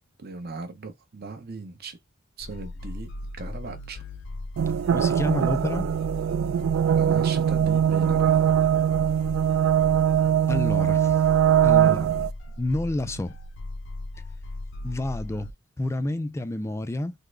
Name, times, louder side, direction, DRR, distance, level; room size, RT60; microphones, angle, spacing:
voice 1, 0.2-2.0 2.4-4.0 6.9-8.4, right 3 dB, 50° right, 0.8 m, -37 dB
sound 1, 2.4-15.5, left 2 dB, 65° left, 0.5 m, -37 dB
sound 2, 4.6-12.3, right 9 dB, 75° right, 0.3 m, -21 dB
voice 2, 4.9-5.9 10.5-11.2 11.6-12.1 12.6-13.3 14.8-15.5 15.8-17.1, left 1 dB, 15° left, 0.3 m, -29 dB
3.6 x 2.0 x 3.2 m
head